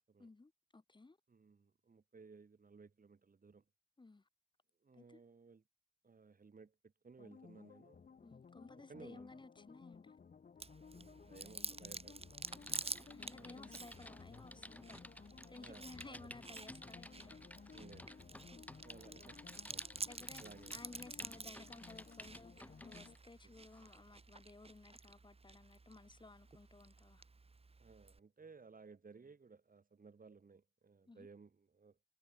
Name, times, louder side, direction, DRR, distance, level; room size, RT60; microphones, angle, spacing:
voice 1, 0.2-1.2 4.0-4.3 4.9-5.2 8.2-10.2 13.1-17.4 18.5-18.6 20.1-20.4 20.7-27.2 31.1-31.3, left 3 dB, 35° left, 0.6 m, -57 dB
voice 2, 1.3-3.6 4.8-5.6 6.0-8.1 8.9-9.3 10.9-12.4 13.0-13.8 15.6-16.4 17.7-18.2 18.8-19.8 20.4-20.8 23.4-23.5 27.8-32.0, right 4 dB, 90° right, 2.2 m, -59 dB
sound 1, 7.2-23.2, left 6 dB, 75° left, 0.6 m, -58 dB
Chewing mastication, 10.6-28.2, right 3 dB, 45° right, 0.9 m, -50 dB
Typing, 12.5-23.2 23.7-23.9, left 1 dB, 10° left, 1.0 m, -55 dB
wide cardioid pair, 50°, 14 cm